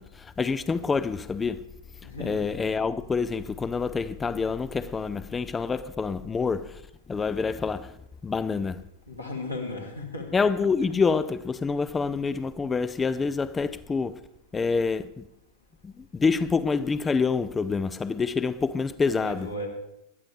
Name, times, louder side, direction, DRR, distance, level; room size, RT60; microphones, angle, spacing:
voice 1, 0.0-1.6 2.0-6.8 7.1-8.8 10.3-14.2 14.5-15.3 15.8-19.5, left 5 dB, 15° left, 0.4 m, -27 dB
voice 2, 2.0-2.4 9.1-10.4 10.8-10.9 19.1-19.7, left 2 dB, 85° left, 3.0 m, -36 dB
20.5 x 12.5 x 3.4 m
figure-of-eight pair, 90°, 0 cm